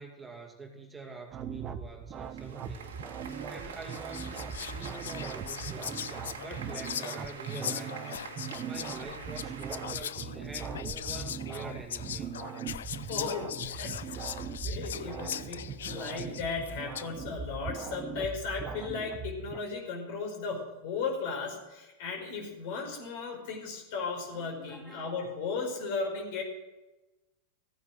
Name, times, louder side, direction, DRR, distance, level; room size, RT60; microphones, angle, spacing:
voice 1, 0.0-3.0 3.5-8.2 8.6-12.4 24.3-25.1, right 3 dB, 15° right, 1 dB, 2.3 m, -46 dB
sound 1, 1.3-19.6, right 6 dB, 35° right, 1.0 m, -40 dB
sound 2, 2.1-9.9, right 6 dB, 75° right, 1.8 m, -45 dB
Whispering, 3.3-3.5 3.9-17.2, left 9 dB, 75° left, 0.6 m, -40 dB
voice 2, 13.0-26.4, left 4 dB, 55° left, 2 dB, 5.0 m, -36 dB
15.5 x 9.6 x 6.5 m, 1.1 s
hypercardioid pair, 95°, 0 cm